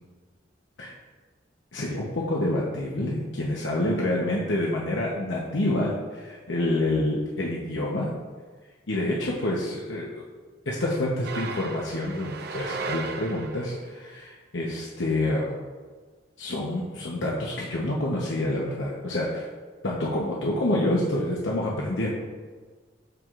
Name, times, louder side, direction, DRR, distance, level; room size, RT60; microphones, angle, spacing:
voice 1, 1.7-8.1 8.9-10.2 10.7-15.5 16.4-19.5 19.8-22.1, left 1 dB, 85° left, -4 dB, 0.9 m, -27 dB
sound 1, 11.2-13.9, right 4 dB, 60° right, 0.6 m, -35 dB
13.0 x 4.8 x 2.5 m, 1.5 s
head